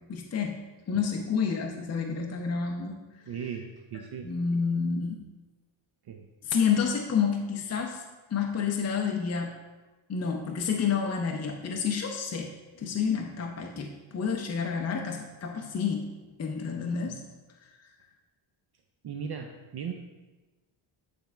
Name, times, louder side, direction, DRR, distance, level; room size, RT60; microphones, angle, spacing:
voice 1, 0.1-3.2 4.2-5.2 6.4-8.0 8.3-9.5 10.1-12.5 12.8-16.1 16.4-17.2, left 6 dB, 30° left, 1 dB, 0.6 m, -29 dB
voice 2, 3.3-4.3 6.1-6.3 17.1-17.2 19.0-19.9, right 7 dB, 50° right, 3 dB, 0.6 m, -37 dB
9.3 x 3.5 x 4.4 m, 1.2 s
wide cardioid pair, 135°, 49 cm